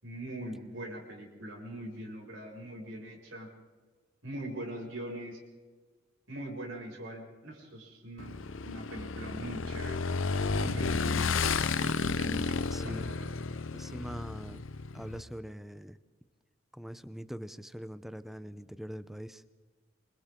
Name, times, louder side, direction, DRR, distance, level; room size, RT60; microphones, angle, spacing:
voice 1, 0.0-3.5 4.2-5.4 6.3-8.4 8.6-10.0 10.6-11.4 11.7-12.5 12.8-13.3, right 1 dB, 75° right, -1 dB, 6.3 m, -41 dB
Motorcycle / Engine, 8.2-15.2, left 4 dB, 75° left, 0.8 m, -32 dB
voice 2, 13.7-14.6 14.9-16.0 16.7-19.4, equal, ahead, 13 dB, 0.7 m, -42 dB
27.5 x 25.0 x 3.8 m, 1.3 s
head